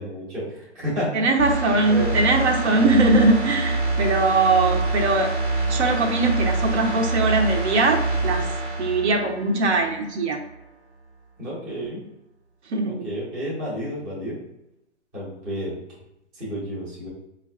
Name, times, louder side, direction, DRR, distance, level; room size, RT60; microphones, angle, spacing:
voice 1, 0.0-1.3 1.7-2.3 11.4-12.0 12.8-14.4 15.1-15.8 16.3-17.1, equal, 10° right, -7 dB, 0.5 m, -31 dB
voice 2, 1.1-5.3 5.7-8.4 8.8-10.4 12.7-13.1, right 2 dB, 70° right, 3 dB, 0.7 m, -21 dB
sound 1, 1.4-10.1 10.4-10.5, right 2 dB, 85° right, 1.2 m, -26 dB
3.9 x 2.3 x 2.2 m, 0.86 s
hypercardioid pair, 150°, 36 cm